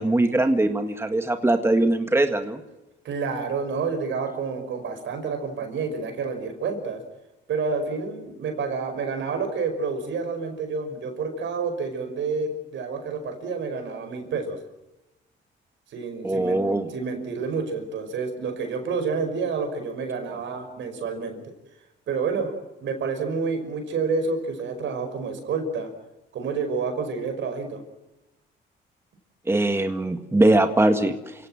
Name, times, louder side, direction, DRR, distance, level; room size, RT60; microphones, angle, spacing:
voice 1, 0.0-2.6 16.2-16.9 29.5-31.3, right 2 dB, 10° right, 7 dB, 1.8 m, -21 dB
voice 2, 3.0-7.0 7.5-14.6 15.9-16.6 16.9-21.5 22.1-22.5 22.8-25.9 26.3-27.8, right 4 dB, 70° right, 7 dB, 5.5 m, -29 dB
28.5 x 17.5 x 7.6 m, 0.99 s
cardioid pair, 90°, 20 cm